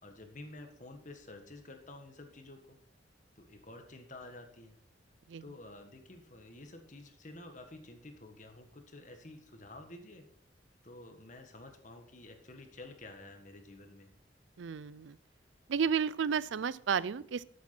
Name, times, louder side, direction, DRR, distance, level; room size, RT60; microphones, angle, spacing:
voice 1, 0.0-2.8 3.3-4.8 5.4-10.3 10.8-14.1, left 2 dB, 40° left, 5 dB, 1.6 m, -50 dB
voice 2, 14.6-15.2 15.7-17.4, right 6 dB, 80° right, 20 dB, 0.4 m, -32 dB
12.0 x 8.4 x 4.4 m, 0.64 s
head